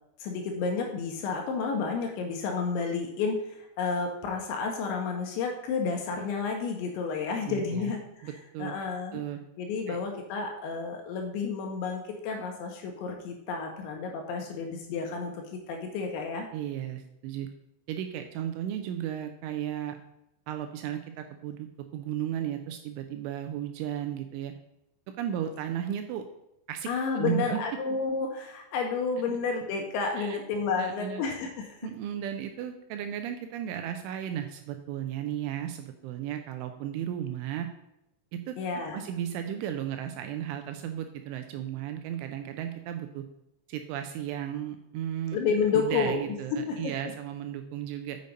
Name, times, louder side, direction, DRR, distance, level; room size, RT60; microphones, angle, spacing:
voice 1, 0.2-8.3 8.6-9.2 9.6-16.5 26.9-31.9 38.6-39.0 45.3-46.4 46.7-46.9, left 5 dB, 75° left, 3 dB, 2.9 m, -31 dB
voice 2, 7.4-7.9 8.2-8.8 9.1-9.4 9.9-10.0 16.5-17.5 17.9-20.0 20.5-24.5 25.2-26.2 26.7-26.9 27.2-27.6 29.3-29.4 30.2-30.4 30.8-31.2 31.8-37.7 38.3-38.6 38.9-43.2 43.7-45.4 45.7-48.2, right 10 dB, 85° right, 7 dB, 2.8 m, -34 dB
6.9 x 6.5 x 5.1 m, 0.84 s
omnidirectional pair, 5.9 m